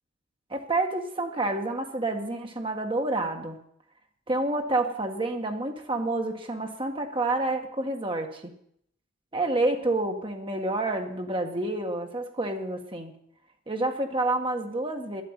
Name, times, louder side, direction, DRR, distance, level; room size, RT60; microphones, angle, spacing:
voice 1, 0.5-3.6 4.3-8.5 9.3-13.1 13.7-15.2, right 2 dB, 25° right, 4 dB, 1.6 m, -28 dB
11.5 x 8.8 x 8.9 m, 0.70 s
head